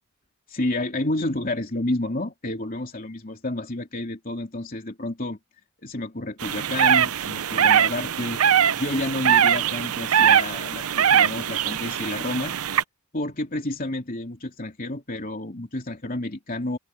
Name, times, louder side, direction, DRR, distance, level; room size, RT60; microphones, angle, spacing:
voice 1, 0.5-5.4 5.8-8.4 8.7-12.5 13.1-16.8, left 1 dB, 40° left, 3.3 m, -30 dB
sound 1, 6.4-12.8, right 8 dB, 80° right, 0.7 m, -21 dB
open air
head